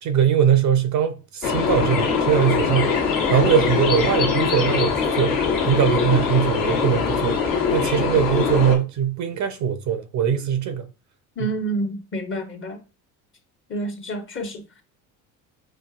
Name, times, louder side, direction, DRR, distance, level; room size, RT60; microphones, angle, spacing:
voice 1, 0.0-5.4 5.7-7.4 7.7-10.9 11.4-11.5, right 8 dB, 40° right, 0.6 m, -21 dB
sound 1, 1.4-8.8, left 5 dB, 45° left, 1.2 m, -22 dB
voice 2, 11.4-12.8 13.7-14.8, right 2 dB, 30° left, 1.0 m, -29 dB
5.5 x 2.6 x 2.4 m
hypercardioid pair, 75°, 43 cm